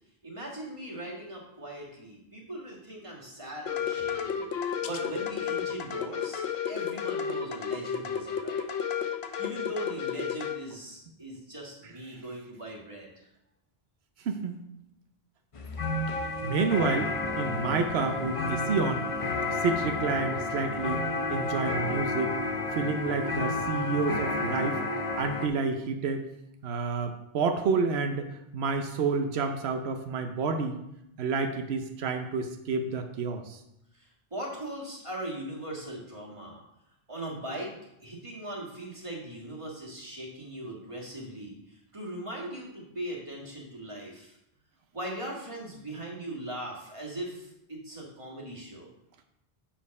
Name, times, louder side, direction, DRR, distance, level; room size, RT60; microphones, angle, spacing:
voice 1, 0.2-8.6 9.0-13.3 33.9-36.6 37.1-37.7 38.0-44.4 44.9-48.9, right 1 dB, 30° right, -2 dB, 1.7 m, -40 dB
sound 1, 3.7-10.6, left 8 dB, 80° left, 0.9 m, -32 dB
voice 2, 14.2-14.6 16.4-19.1 19.5-22.4 22.7-24.8 25.2-26.2 26.6-30.8 31.2-33.6, right 4 dB, 90° right, 6 dB, 0.9 m, -29 dB
sound 2, 15.5-25.5, left 2 dB, 40° left, 0.6 m, -31 dB
7.2 x 4.4 x 5.3 m, 0.82 s
omnidirectional pair, 1.0 m